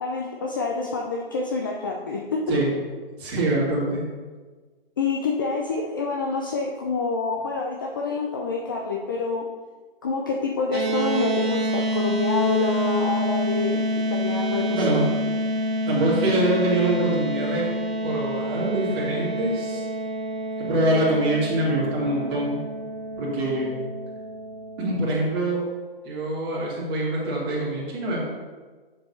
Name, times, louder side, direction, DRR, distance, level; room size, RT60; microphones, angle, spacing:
voice 1, 0.0-2.4 5.0-9.4 10.0-15.0, left 3 dB, 20° left, -1 dB, 0.4 m, -27 dB
voice 2, 3.2-4.0 14.7-15.1 15.9-17.6 18.0-19.9 20.6-22.6 23.2-23.7 24.8-25.6 26.0-28.2, right 1 dB, 25° right, -6 dB, 2.4 m, -24 dB
sound 1, 10.7-25.1, equal, 90° right, 1.5 m, -28 dB
9.4 x 6.8 x 2.8 m, 1.4 s
figure-of-eight pair, 135°, 30 cm